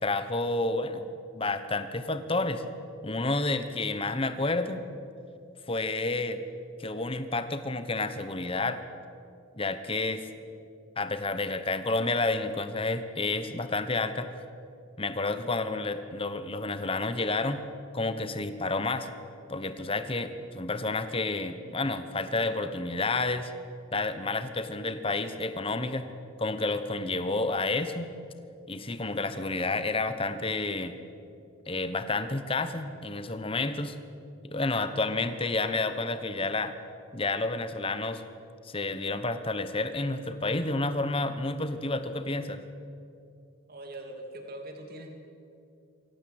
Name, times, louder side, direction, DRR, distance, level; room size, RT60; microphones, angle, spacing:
voice 1, 0.0-2.6 3.0-4.8 5.7-6.4 6.8-8.8 9.6-10.2 11.0-14.3 15.0-17.7 17.9-19.1 19.5-23.5 23.9-26.1 26.4-28.1 28.7-30.9 31.7-34.0 34.4-36.7 37.1-38.2 38.6-42.6, left 3 dB, 25° left, 10 dB, 1.1 m, -30 dB
voice 2, 43.7-45.1, right 1 dB, 45° right, 3 dB, 2.8 m, -42 dB
24.0 x 17.0 x 7.9 m, 2.5 s
head